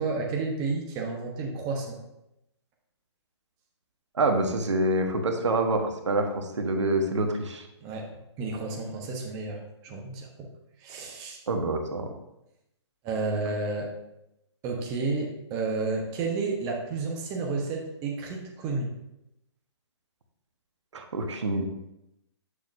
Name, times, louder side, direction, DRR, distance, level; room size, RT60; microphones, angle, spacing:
voice 1, 0.0-2.0 7.8-8.1 8.4-10.5 10.8-11.4 13.0-13.9 14.6-18.9, right 3 dB, 25° right, 1 dB, 1.1 m, -31 dB
voice 2, 4.1-7.7 11.5-12.1 20.9-21.7, right 2 dB, 75° right, 4 dB, 1.3 m, -26 dB
8.0 x 6.5 x 2.7 m, 0.86 s
hypercardioid pair, 145°, 15 cm